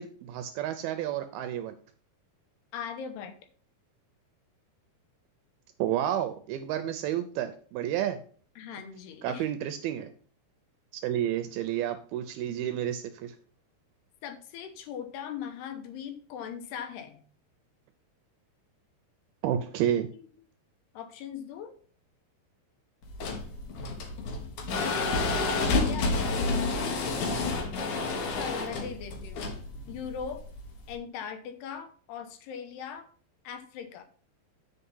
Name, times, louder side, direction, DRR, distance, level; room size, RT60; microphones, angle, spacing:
voice 1, 0.0-1.7 5.8-8.2 9.2-10.1 10.9-13.3 19.4-20.1, right 11 dB, 80° right, 9 dB, 2.2 m, -30 dB
voice 2, 2.7-3.4 8.6-9.5 14.2-17.2 20.1-20.3 20.9-21.7 25.2-26.4 28.3-29.5 29.9-30.4 30.9-33.1 33.4-34.0, left 8 dB, 75° left, 8 dB, 2.9 m, -40 dB
sound 1, 23.0-30.9, left 3 dB, 60° left, 2.3 m, -30 dB
8.2 x 5.6 x 5.4 m, 0.44 s
omnidirectional pair, 4.9 m